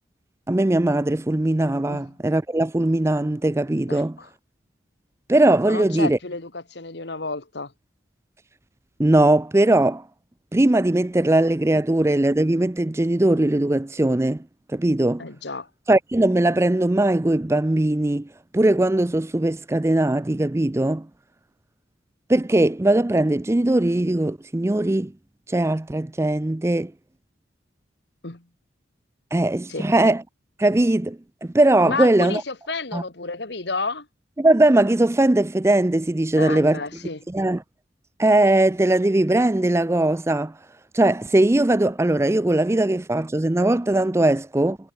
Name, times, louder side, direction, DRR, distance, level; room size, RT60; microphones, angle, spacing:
voice 1, 0.5-4.2 5.3-6.2 9.0-10.0 10.5-14.4 14.7-15.2 15.9-18.3 18.5-21.1 22.3-25.1 25.5-26.9 29.3-30.2 30.6-32.4 32.9-33.0 34.4-36.8 37.3-37.6 38.2-40.5 40.9-44.8, right 1 dB, 15° right, 0.4 m, -20 dB
voice 2, 3.9-4.3 5.7-7.7 15.2-15.7 28.2-28.4 29.7-29.8 31.8-34.1 36.4-37.2, left 3 dB, 65° left, 1.9 m, -31 dB
head